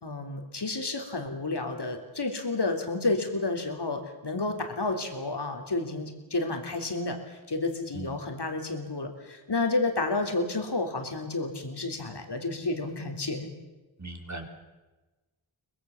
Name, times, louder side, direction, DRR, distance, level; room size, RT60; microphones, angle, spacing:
voice 1, 0.0-13.5, left 3 dB, 60° left, 4 dB, 3.5 m, -31 dB
voice 2, 14.0-14.5, right 2 dB, 35° right, 4 dB, 3.7 m, -38 dB
23.5 x 20.5 x 7.3 m, 1.2 s
wide cardioid pair, 55°, 46 cm